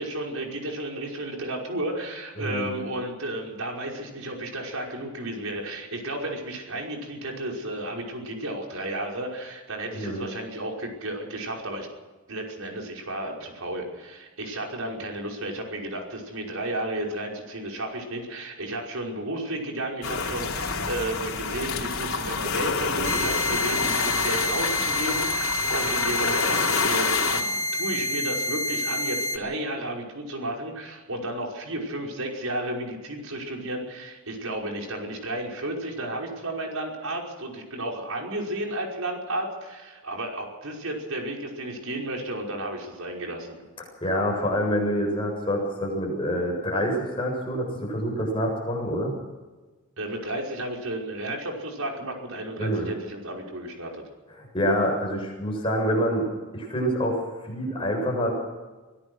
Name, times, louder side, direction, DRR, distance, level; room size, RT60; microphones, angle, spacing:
voice 1, 0.0-11.9 12.3-43.6 50.0-54.0, right 1 dB, 80° right, 0 dB, 5.5 m, -33 dB
voice 2, 2.4-2.8 9.9-10.2 44.0-49.1 52.6-52.9 54.5-56.3 56.5-58.3, equal, 25° left, -1 dB, 7.5 m, -26 dB
sound 1, 20.0-27.4, left 5 dB, 80° left, 3.3 m, -27 dB
sound 2, 23.0-29.4, left 1 dB, 30° right, 1.7 m, -28 dB
24.5 x 17.5 x 6.4 m, 1.2 s
head